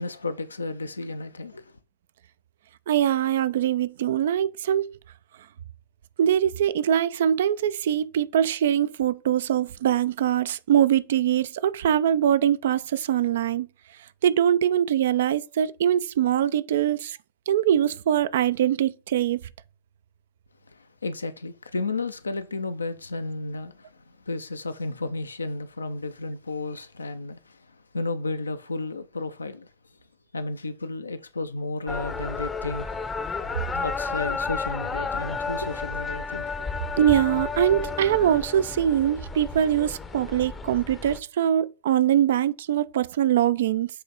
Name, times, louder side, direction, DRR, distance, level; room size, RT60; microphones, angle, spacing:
voice 1, 0.0-1.7 20.7-29.7 30.3-32.9 33.7-36.4, left 3 dB, 75° left, 0.6 m, -33 dB
voice 2, 2.9-5.0 6.2-13.7 14.2-17.2 17.5-19.4 37.0-43.9, right 10 dB, 60° right, 0.4 m, -23 dB
sound 1, 31.9-41.2, left 4 dB, 15° left, 0.7 m, -32 dB
7.6 x 3.3 x 4.0 m
figure-of-eight pair, 90°, 0 cm